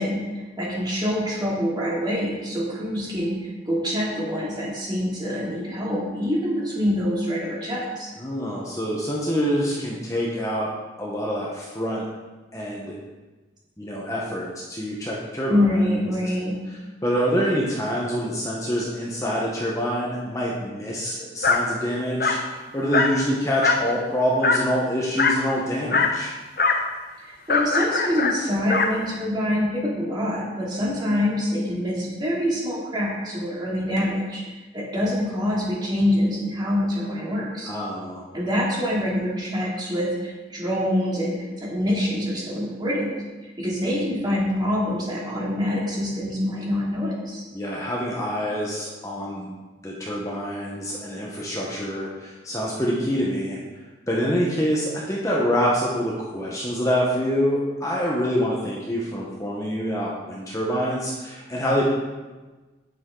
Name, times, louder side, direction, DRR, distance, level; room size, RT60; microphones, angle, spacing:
voice 1, 0.0-8.1 15.5-16.6 27.2-34.4 34.7-37.7 38.3-43.1 43.6-47.4, left 1 dB, 25° right, -5 dB, 2.6 m, -25 dB
voice 2, 8.2-10.7 11.0-12.1 12.5-13.0 13.8-15.9 16.7-26.3 37.7-38.3 47.5-49.5 49.8-53.6 54.1-61.8, equal, 20° left, -4 dB, 1.2 m, -26 dB
Dog, 21.4-21.7 22.2-22.5 22.9-23.2 23.6-23.9 24.4-24.7 25.2-25.5 25.9-26.2 26.6-26.9 27.5-29.0, left 4 dB, 55° left, 0.8 m, -21 dB
9.3 x 8.0 x 3.8 m, 1.2 s
head